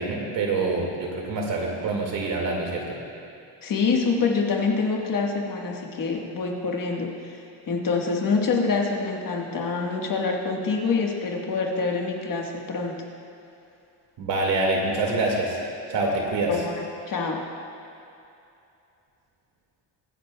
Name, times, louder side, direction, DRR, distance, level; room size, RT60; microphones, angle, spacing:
voice 1, 0.0-2.8 14.2-15.6 15.9-16.6, right 2 dB, 85° right, -1 dB, 2.1 m, -26 dB
voice 2, 3.6-7.4 7.7-13.0 16.5-17.4, left 4 dB, 50° left, 0 dB, 1.5 m, -26 dB
23.5 x 9.3 x 2.3 m, 2.7 s
cardioid pair, 160°, 43 cm